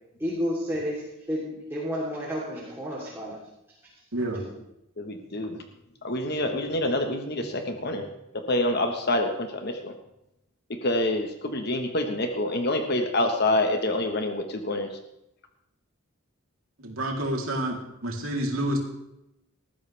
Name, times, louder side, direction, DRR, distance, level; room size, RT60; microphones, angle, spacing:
voice 1, 0.2-3.4, equal, 10° right, -6 dB, 3.4 m, -31 dB
voice 2, 4.1-4.4 16.8-18.8, right 1 dB, 75° right, -1 dB, 3.5 m, -29 dB
voice 3, 5.0-5.6 6.0-8.0 8.3-9.9 10.7-14.9, left 1 dB, 45° left, 5 dB, 1.4 m, -27 dB
20.0 x 14.0 x 3.5 m, 0.85 s
head